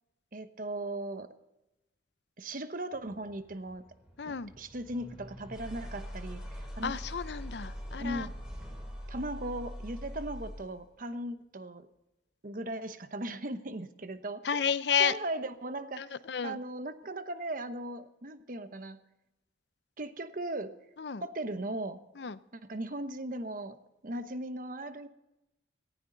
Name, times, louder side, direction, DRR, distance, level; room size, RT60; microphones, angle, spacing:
voice 1, 0.3-1.4 2.4-3.8 4.2-6.9 8.0-8.3 9.1-11.9 12.4-14.4 15.0-16.1 16.4-19.0 20.0-20.7 21.2-22.0 22.5-25.1, right 1 dB, 50° right, 10 dB, 1.0 m, -38 dB
sound 1, 2.9-10.8, equal, 5° right, 3.8 m, -43 dB
voice 2, 4.2-4.5 6.8-8.3 14.4-15.1 16.0-16.6 21.0-21.2 22.2-22.4, left 7 dB, 70° left, 15 dB, 0.6 m, -31 dB
18.5 x 15.5 x 3.9 m, 0.96 s
head